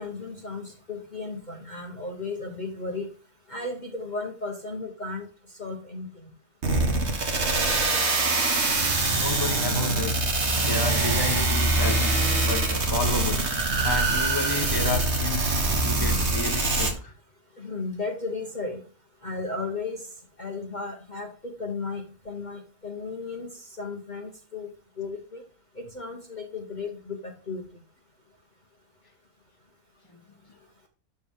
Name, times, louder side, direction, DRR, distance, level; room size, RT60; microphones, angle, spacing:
voice 1, 0.0-3.1 3.5-5.3 5.6-6.3 17.6-18.8 19.2-20.1 20.4-24.7 25.0-25.4 25.8-27.6, left 3 dB, 30° left, 2 dB, 1.3 m, -35 dB
sound 1, 6.6-16.9, right 2 dB, 50° right, 1.9 m, -24 dB
voice 2, 9.1-10.1 10.6-13.5 13.8-17.1, left 3 dB, 15° left, 3 dB, 1.3 m, -31 dB
12.0 x 4.4 x 3.7 m, 0.39 s
omnidirectional pair, 1.6 m